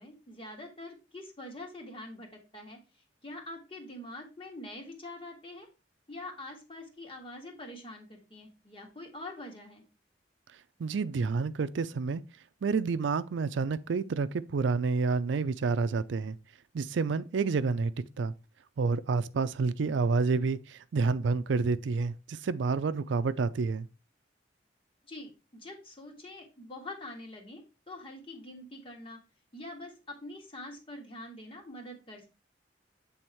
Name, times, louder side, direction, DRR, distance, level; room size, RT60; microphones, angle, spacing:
voice 1, 0.0-2.8 3.2-5.7 6.1-9.8 25.1-29.2 29.5-32.3, left 1 dB, 30° left, 1.7 m, -45 dB
voice 2, 10.8-12.2 12.6-16.4 16.7-17.9 18.2-18.3 18.8-23.9, right 4 dB, 85° right, 0.4 m, -29 dB
7.8 x 3.5 x 4.4 m
head